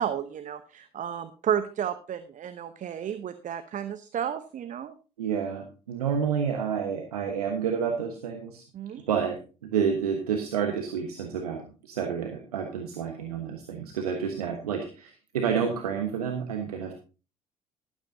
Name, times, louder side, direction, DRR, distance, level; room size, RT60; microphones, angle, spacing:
voice 1, 0.0-4.9 8.7-9.0, right 9 dB, 40° right, 11 dB, 0.9 m, -32 dB
voice 2, 5.2-8.6 9.1-16.9, right 7 dB, 80° right, 4 dB, 1.2 m, -29 dB
13.0 x 12.5 x 2.7 m, 0.35 s
figure-of-eight pair, 55°, 19 cm